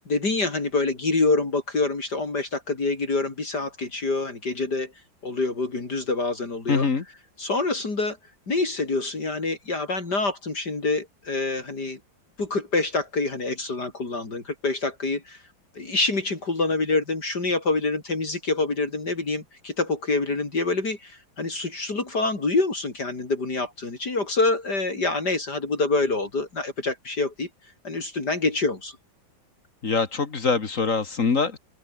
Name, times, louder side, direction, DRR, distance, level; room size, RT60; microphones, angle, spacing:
voice 1, 0.1-4.9 5.2-6.8 7.4-8.2 8.5-12.0 12.4-15.4 15.7-27.5 27.8-29.0, left 3 dB, 60° left, 4.8 m, -26 dB
voice 2, 6.7-7.0 29.8-31.6, left 4 dB, 45° left, 2.1 m, -23 dB
open air
omnidirectional pair, 2.0 m